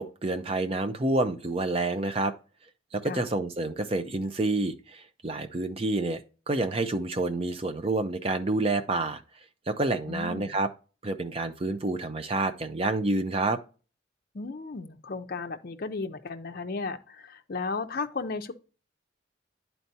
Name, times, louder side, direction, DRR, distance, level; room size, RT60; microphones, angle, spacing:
voice 1, 0.0-2.3 2.9-6.2 6.5-9.2 9.7-10.7 11.0-13.6, right 2 dB, 30° right, 0.5 m, -28 dB
voice 2, 10.1-10.5 14.3-18.5, left 4 dB, 45° left, 0.5 m, -34 dB
10.5 x 4.5 x 2.7 m
head